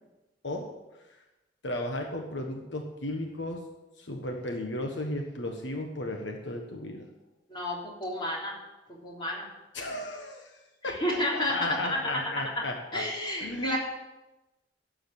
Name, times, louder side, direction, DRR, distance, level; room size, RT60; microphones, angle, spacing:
voice 1, 1.6-3.6 4.0-7.1 9.7-13.0 13.4-13.8, left 1 dB, 75° left, 2 dB, 1.5 m, -35 dB
voice 2, 7.5-8.6 8.9-9.5 10.8-12.2 12.9-13.8, left 1 dB, 25° left, -3 dB, 3.3 m, -31 dB
12.0 x 7.7 x 7.3 m, 1.0 s
head